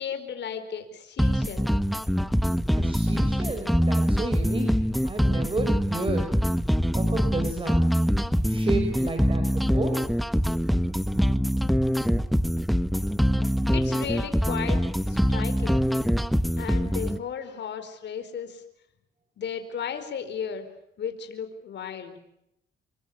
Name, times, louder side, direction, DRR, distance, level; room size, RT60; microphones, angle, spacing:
voice 1, 0.0-1.7 13.7-14.8 15.1-15.9 16.6-18.6 19.4-20.7 21.0-22.2, left 7 dB, 60° left, 8 dB, 4.8 m, -35 dB
sound 1, 1.2-17.2, equal, ahead, 1.1 m, -24 dB
voice 2, 2.8-4.7 5.0-6.3 6.9-7.9 8.4-10.0, right 2 dB, 25° right, 6 dB, 4.9 m, -31 dB
26.5 x 23.5 x 8.4 m, 0.80 s
cardioid pair, 90°, 20 cm